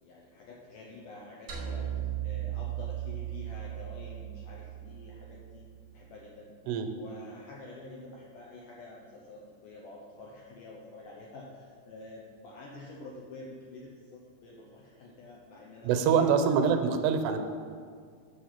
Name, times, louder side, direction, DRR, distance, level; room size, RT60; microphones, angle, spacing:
voice 1, 0.0-5.6 5.9-6.5 6.9-16.4, left 2 dB, 80° left, -3 dB, 1.9 m, -48 dB
sound 1, 1.5-5.9, right 11 dB, 70° right, 1.2 m, -37 dB
voice 2, 15.8-17.4, right 6 dB, 85° right, 7 dB, 2.7 m, -25 dB
7.6 x 6.7 x 5.7 m, 2.1 s
omnidirectional pair, 4.7 m